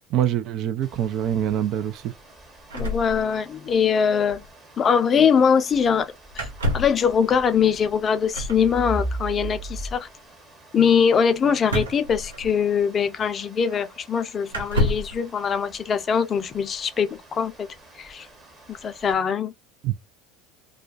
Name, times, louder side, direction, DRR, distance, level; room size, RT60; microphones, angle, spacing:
voice 1, 0.1-2.1 19.8-19.9, right 10 dB, 50° right, 0.4 m, -24 dB
sound 1, 0.8-19.1, right 2 dB, 20° right, 1.0 m, -41 dB
voice 2, 2.7-4.4 4.8-6.5 6.7-10.1 10.7-17.5 18.0-18.3 18.7-19.5, left 7 dB, 35° left, 0.5 m, -22 dB
sound 2, 2.7-4.0 4.3-4.5 6.3-7.0 8.3-8.7 11.6-12.8 13.7-13.8 14.5-15.2, left 1 dB, 85° right, 0.8 m, -28 dB
2.4 x 2.2 x 2.4 m
hypercardioid pair, 75°, 0 cm